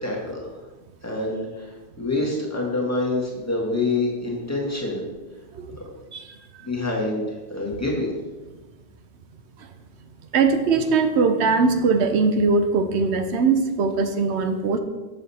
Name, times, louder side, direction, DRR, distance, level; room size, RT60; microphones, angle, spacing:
voice 1, 0.0-0.6 1.0-1.7 2.0-5.0 6.6-8.1, left 2 dB, 15° left, -3 dB, 1.4 m, -26 dB
voice 2, 10.3-14.8, right 4 dB, 85° right, 8 dB, 1.0 m, -21 dB
6.7 x 6.4 x 4.1 m, 1.2 s
omnidirectional pair, 1.1 m